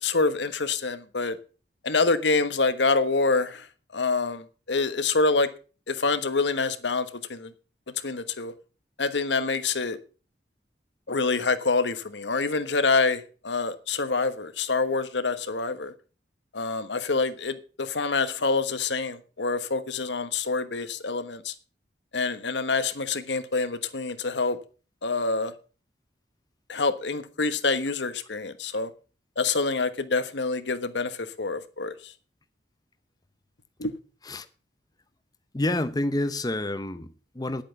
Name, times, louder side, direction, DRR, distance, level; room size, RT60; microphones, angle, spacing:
voice 1, 0.0-1.4 1.8-3.7 3.9-5.5 5.9-7.5 7.9-8.5 9.0-10.0 11.1-15.9 16.5-21.5 22.1-24.6 25.0-25.5 26.7-28.9 29.4-32.1 33.8-33.9, left 4 dB, 75° left, 1.3 m, -26 dB
voice 2, 35.5-37.6, left 1 dB, 20° left, 0.7 m, -28 dB
10.5 x 8.6 x 7.0 m
head